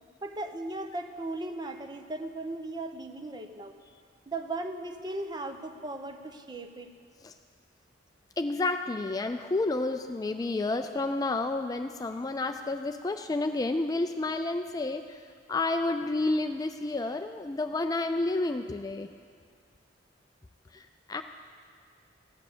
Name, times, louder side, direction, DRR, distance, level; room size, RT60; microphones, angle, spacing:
voice 1, 0.2-3.7 4.3-6.9, right 2 dB, 25° right, 7 dB, 0.8 m, -37 dB
voice 2, 8.4-15.2 15.5-19.1 20.7-21.2, left 2 dB, 20° left, 7 dB, 0.3 m, -30 dB
15.5 x 9.1 x 6.7 m, 2.1 s
head